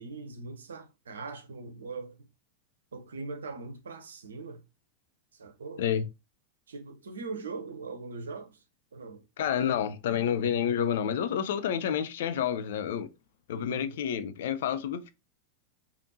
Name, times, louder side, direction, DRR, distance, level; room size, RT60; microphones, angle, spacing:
voice 1, 0.0-2.3 2.9-4.6 5.3-5.8 6.7-8.6 8.9-9.2 13.5-14.0, right 4 dB, 70° right, 0.8 m, -41 dB
voice 2, 9.4-13.1 13.5-15.1, left 9 dB, 55° left, 0.4 m, -29 dB
5.1 x 2.5 x 2.8 m
figure-of-eight pair, 90°, 0 cm